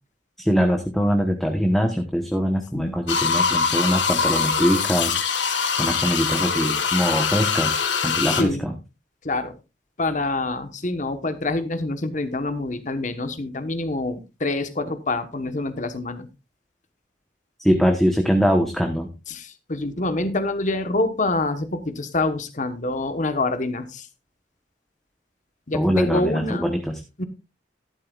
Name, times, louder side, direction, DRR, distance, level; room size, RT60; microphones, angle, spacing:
voice 1, 0.4-5.5 5.8-8.7 17.6-19.1 25.7-27.0, equal, ahead, 3 dB, 1.0 m, -22 dB
sound 1, 3.1-8.4, left 5 dB, 80° left, 1.6 m, -23 dB
voice 2, 8.3-8.6 9.2-9.6 10.0-16.3 19.3-24.1 25.7-26.7 27.2-27.3, left 2 dB, 40° left, 10 dB, 1.2 m, -26 dB
13.0 x 11.5 x 2.4 m, 0.27 s
head